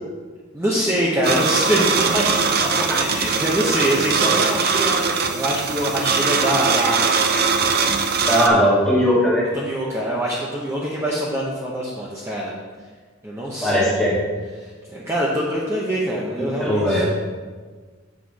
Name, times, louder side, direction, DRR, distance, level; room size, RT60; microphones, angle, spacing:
voice 1, 0.5-7.2 9.5-12.6 13.2-14.0 14.5-17.1, equal, 15° right, -5 dB, 0.8 m, -24 dB
sound 1, 1.2-8.5, right 5 dB, 50° right, 0.6 m, -21 dB
voice 2, 8.2-9.4 13.6-14.2 16.6-17.1, equal, 5° left, -8 dB, 1.5 m, -18 dB
7.2 x 4.3 x 6.3 m, 1.5 s
head